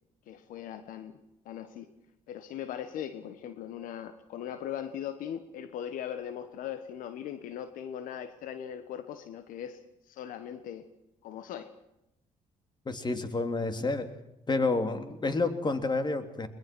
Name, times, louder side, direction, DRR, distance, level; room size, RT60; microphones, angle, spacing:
voice 1, 0.3-1.9 2.3-9.8 10.1-10.9 11.2-11.7, left 9 dB, 80° left, 11 dB, 1.4 m, -39 dB
voice 2, 12.8-14.1 14.5-16.5, left 3 dB, 30° left, 9 dB, 3.1 m, -29 dB
22.0 x 21.5 x 6.2 m, 0.86 s
supercardioid pair, 65°, 14 cm